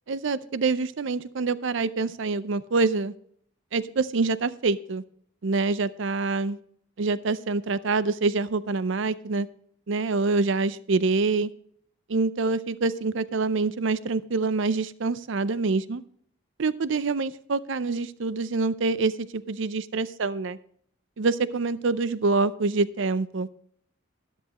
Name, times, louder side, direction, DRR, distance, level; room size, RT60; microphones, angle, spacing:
voice 1, 0.1-3.1 3.7-5.0 5.4-6.6 7.0-9.5 9.9-11.5 12.1-16.0 16.6-20.6 21.2-23.5, right 3 dB, 65° right, 16 dB, 0.5 m, -26 dB
13.0 x 10.5 x 3.0 m, 0.62 s
head